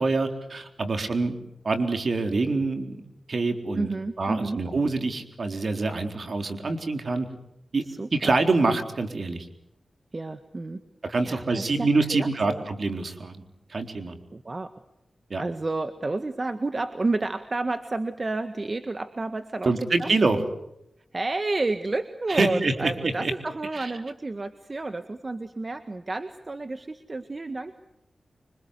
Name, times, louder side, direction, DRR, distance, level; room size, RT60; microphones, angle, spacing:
voice 1, 0.0-1.4 1.6-3.0 3.3-3.9 4.2-7.3 7.7-7.8 8.1-9.5 11.0-13.4 13.7-14.2 15.3-15.4 19.7-20.4 22.3-23.3 23.7-23.9, right 3 dB, 65° right, 6 dB, 3.9 m, -25 dB
voice 2, 3.7-4.6 7.9-8.3 10.1-10.8 11.2-12.6 14.3-14.7 15.4-19.7 20.0-20.1 21.1-27.8, right 2 dB, 45° right, 9 dB, 1.7 m, -30 dB
26.0 x 25.5 x 8.3 m, 0.82 s
cardioid pair, 40°, 0 cm